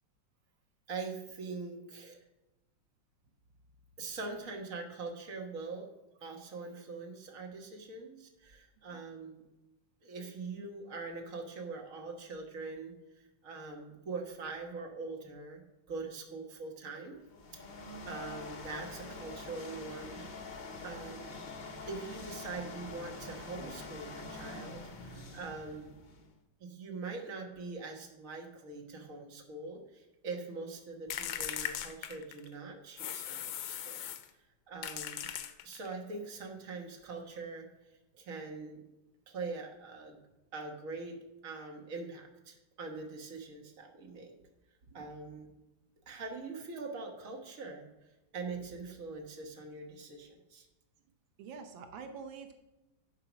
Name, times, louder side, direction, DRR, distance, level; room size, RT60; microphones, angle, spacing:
voice 1, 0.9-2.2 4.0-5.9 6.2-9.4 10.0-15.6 15.9-17.2 18.1-20.3 20.5-21.3 21.9-25.9 26.6-34.0 34.7-35.3 35.6-37.7 38.1-38.8 39.3-40.2 40.5-41.2 41.4-44.3 44.9-45.5 46.1-47.9 48.3-50.7, right 3 dB, 50° right, 1 dB, 1.7 m, -43 dB
sound 1, 17.2-26.4, left 3 dB, 40° left, 0.6 m, -45 dB
sound 2, 31.1-32.5 33.0-34.3 34.8-35.9, left 10 dB, 85° left, 1.4 m, -39 dB
voice 2, 51.4-52.5, right 5 dB, 85° right, 6 dB, 1.6 m, -46 dB
11.5 x 4.8 x 6.1 m, 1.0 s
omnidirectional pair, 2.0 m